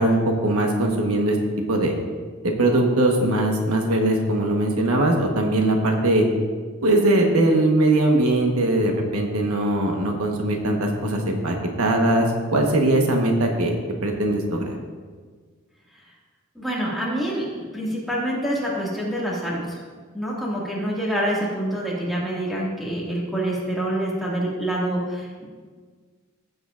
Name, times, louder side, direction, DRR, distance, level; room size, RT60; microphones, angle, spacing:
voice 1, 0.0-1.4 1.7-1.9 2.4-6.2 6.8-14.8, right 1 dB, 80° right, 2 dB, 1.3 m, -21 dB
voice 2, 16.6-19.8 20.1-25.5, right 1 dB, ahead, -6 dB, 2.0 m, -26 dB
15.0 x 7.9 x 2.5 m, 1.5 s
head